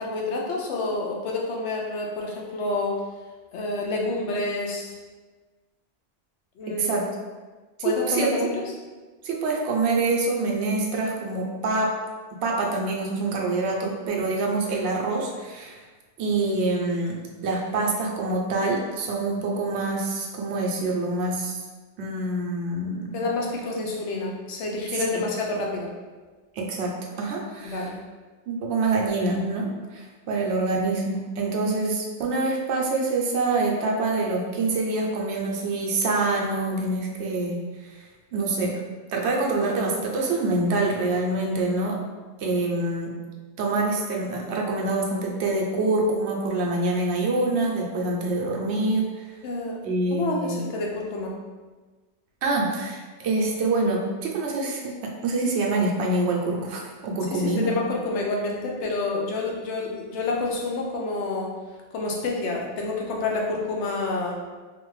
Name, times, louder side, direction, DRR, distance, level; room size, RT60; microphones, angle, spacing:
voice 1, 0.0-3.0 3.5-4.9 6.6-7.1 7.8-8.7 23.1-25.9 27.6-28.0 49.4-49.8 50.1-51.3 57.3-61.5 61.9-64.4, left 3 dB, 85° left, -1 dB, 0.9 m, -28 dB
voice 2, 9.2-11.9 12.4-15.8 16.2-21.6 22.0-23.1 25.1-25.3 26.5-26.9 27.2-27.9 28.5-38.7 39.1-42.0 42.4-43.1 43.6-49.2 49.8-50.5 52.4-57.7, right 2 dB, 80° right, -1 dB, 0.9 m, -26 dB
2.6 x 2.4 x 3.0 m, 1.3 s
omnidirectional pair, 1.1 m